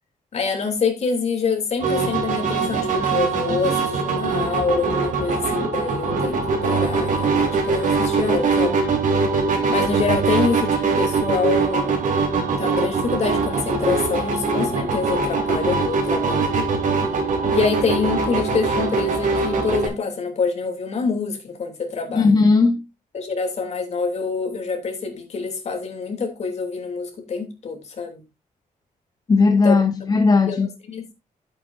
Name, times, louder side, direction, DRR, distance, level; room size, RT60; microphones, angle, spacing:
voice 1, 0.3-8.8 9.7-12.0 12.6-16.7 17.5-22.4 23.1-28.2 29.6-29.7 30.5-31.1, left 5 dB, 50° left, 3.0 m, -26 dB
sound 1, 1.8-19.9, right 4 dB, 60° right, 3.8 m, -22 dB
voice 2, 22.1-22.8 29.3-30.7, left 4 dB, 25° left, 0.7 m, -16 dB
11.5 x 8.6 x 2.6 m
wide cardioid pair, 155°, 15 cm